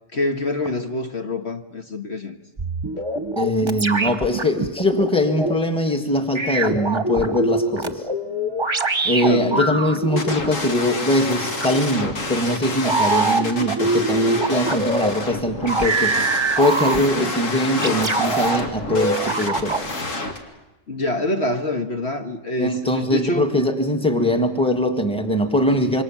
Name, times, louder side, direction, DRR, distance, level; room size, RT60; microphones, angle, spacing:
voice 1, 0.1-2.4 9.2-9.8 20.9-23.5, left 1 dB, 60° left, 5 dB, 1.7 m, -26 dB
sound 1, 2.6-5.5 6.3-10.3 11.6-11.8 12.8-15.1 15.6-17.3 17.8-18.6 18.9-19.9, right 2 dB, 25° right, 1.2 m, -23 dB
voice 2, 3.4-8.0 9.0-16.2 16.6-19.8 22.6-26.0, left 1 dB, 5° left, 5 dB, 1.8 m, -21 dB
sound 2, 10.2-20.4, left 2 dB, 85° left, 2.6 m, -28 dB
26.5 x 24.0 x 7.4 m, 1.0 s
omnidirectional pair, 1.3 m